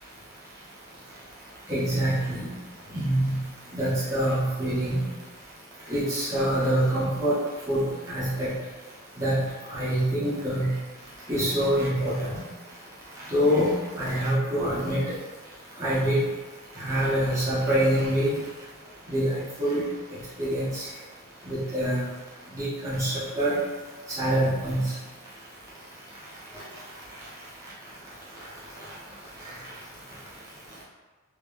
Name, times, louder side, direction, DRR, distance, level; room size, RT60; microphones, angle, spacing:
voice 1, 1.7-2.5 2.9-3.4 3.7-5.0 5.9-7.4 7.7-7.8 8.1-8.5 9.2-9.4 9.7-10.7 11.3-12.4 13.3-15.0 15.8-16.2 16.8-18.3 19.1-19.3 19.6-19.9 20.4-20.8 21.5-22.0 22.5-23.6 24.2-24.8, equal, 15° right, -10 dB, 1.0 m, -25 dB
3.5 x 3.0 x 2.4 m, 1.3 s
head